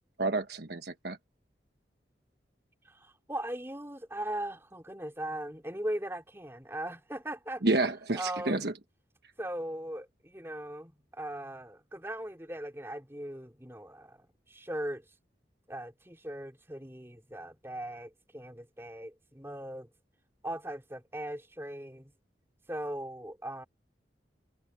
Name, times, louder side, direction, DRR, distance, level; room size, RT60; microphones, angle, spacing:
voice 1, 0.2-1.2 7.6-8.7, right 2 dB, 65° right, 1.2 m, -29 dB
voice 2, 2.9-7.6 8.2-8.7 9.4-15.0 15.7-19.9 20.4-22.1 22.7-23.6, right 1 dB, 15° right, 3.5 m, -39 dB
head